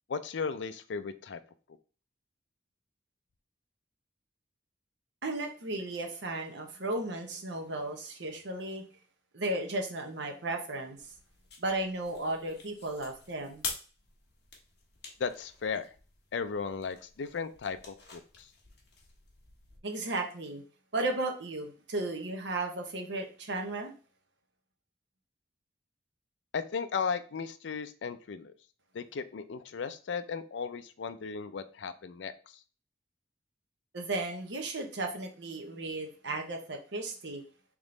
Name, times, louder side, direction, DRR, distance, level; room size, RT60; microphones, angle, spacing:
voice 1, 0.1-1.4 15.2-15.9 16.3-18.5 26.5-28.5 28.9-32.3, left 5 dB, 80° left, 11 dB, 0.4 m, -36 dB
voice 2, 5.2-8.8 9.3-11.0 11.6-13.6 19.8-20.6 20.9-23.9 33.9-37.4, right 2 dB, 80° right, 4 dB, 0.9 m, -35 dB
sound 1, 11.0-19.8, left 4 dB, 65° left, 1.2 m, -47 dB
3.6 x 3.1 x 3.8 m, 0.37 s
head